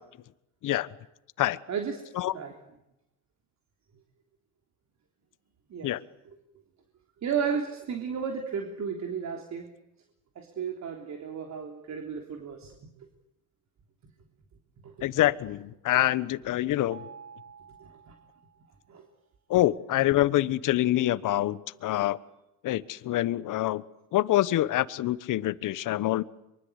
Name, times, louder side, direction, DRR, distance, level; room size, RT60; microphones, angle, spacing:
voice 1, 1.7-2.0 2.3-2.6 5.7-5.9 6.3-6.4 7.2-9.7 10.4-12.9 14.8-15.0 17.8-18.1 18.9-19.1, right 6 dB, 50° right, 4 dB, 3.5 m, -33 dB
voice 2, 15.0-17.1 19.5-22.2 22.6-23.8 24.1-26.2, left 14 dB, 55° left, 16 dB, 1.2 m, -26 dB
Mallet percussion, 16.9-18.9, right 6 dB, 80° right, 5.1 m, -49 dB
24.0 x 23.5 x 8.2 m, 0.87 s
supercardioid pair, 90°, 37 cm